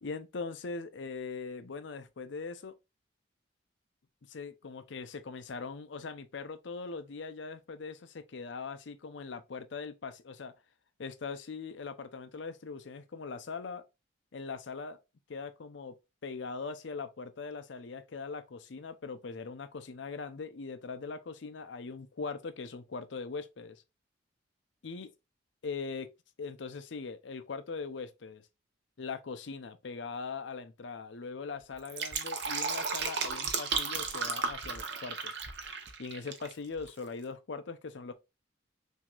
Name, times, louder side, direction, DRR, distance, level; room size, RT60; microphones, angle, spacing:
voice 1, 0.0-2.7 4.3-10.5 11.0-13.8 14.3-15.0 15.3-16.0 16.2-23.8 24.8-25.1 25.6-26.1 26.4-28.4 29.0-35.4 36.0-38.1, left 4 dB, 75° left, 0.5 m, -41 dB
Fill (with liquid), 31.7-36.5 36.8-36.9, right 5 dB, 60° right, 0.7 m, -34 dB
6.0 x 2.7 x 2.3 m
head